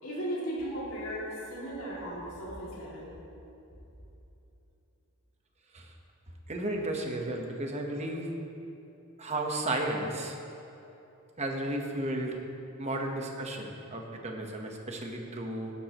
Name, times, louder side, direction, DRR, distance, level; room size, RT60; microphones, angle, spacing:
voice 1, 0.0-3.1, equal, 65° left, -8 dB, 2.5 m, -36 dB
voice 2, 6.5-8.3 9.2-10.3 11.4-12.4 12.8-15.7, right 1 dB, 30° right, 2 dB, 1.1 m, -33 dB
17.0 x 10.0 x 3.0 m, 3.0 s
head